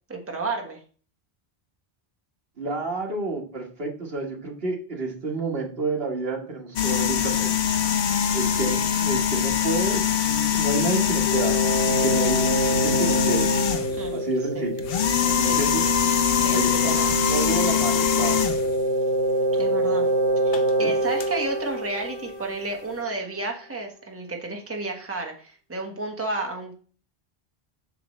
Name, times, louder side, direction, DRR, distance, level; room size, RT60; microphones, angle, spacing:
voice 1, 0.1-0.8 8.6-8.7 13.9-14.2 14.5-14.6 15.2-15.9 16.3-17.1 19.6-20.1 20.4-26.7, right 3 dB, 15° right, 2 dB, 1.2 m, -32 dB
voice 2, 2.6-7.5 8.3-12.4 12.7-13.5 14.1-14.7 15.3-15.8 16.5-16.9 17.3-18.4 20.8-20.9, right 3 dB, 70° right, 0 dB, 1.7 m, -29 dB
sound 1, 6.8-14.1 14.8-18.8 20.5-20.7 21.2-21.3, left 8 dB, 70° left, 0.9 m, -23 dB
sound 2, 11.3-22.9, right 1 dB, 90° left, 3.0 m, -26 dB
7.8 x 6.0 x 3.1 m, 0.40 s
omnidirectional pair, 1.0 m